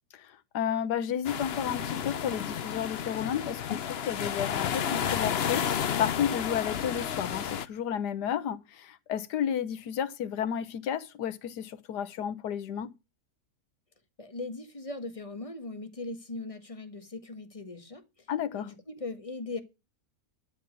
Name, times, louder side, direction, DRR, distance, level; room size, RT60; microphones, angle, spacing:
voice 1, 0.2-12.9 18.3-18.7, left 9 dB, 80° left, 1.5 m, -32 dB
sound 1, 1.2-7.7, left 8 dB, 50° left, 0.8 m, -31 dB
voice 2, 14.2-18.3 18.5-19.6, left 3 dB, 20° left, 1.5 m, -39 dB
12.5 x 7.5 x 6.4 m
omnidirectional pair, 1.7 m